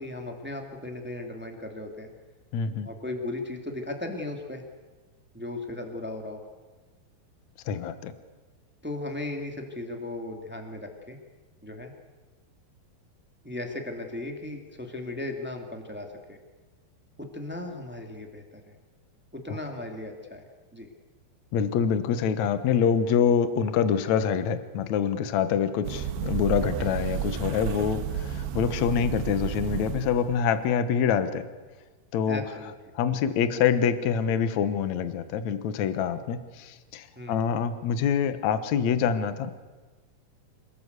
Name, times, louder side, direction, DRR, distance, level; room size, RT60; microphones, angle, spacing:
voice 1, 0.0-2.1 2.8-4.6 5.3-6.4 8.8-11.2 11.6-11.9 13.4-16.4 17.2-18.7 19.3-20.4 20.7-20.9 32.3-32.7 37.1-37.4, left 2 dB, 5° right, 3 dB, 1.1 m, -36 dB
voice 2, 2.5-2.9 7.6-8.1 19.5-19.6 21.5-31.5 32.1-32.4 32.9-39.5, left 7 dB, 80° left, 11 dB, 1.6 m, -26 dB
sound 1, 25.8-30.4, right 10 dB, 75° right, 3.0 m, -32 dB
27.0 x 19.5 x 8.2 m, 1.3 s
omnidirectional pair, 5.2 m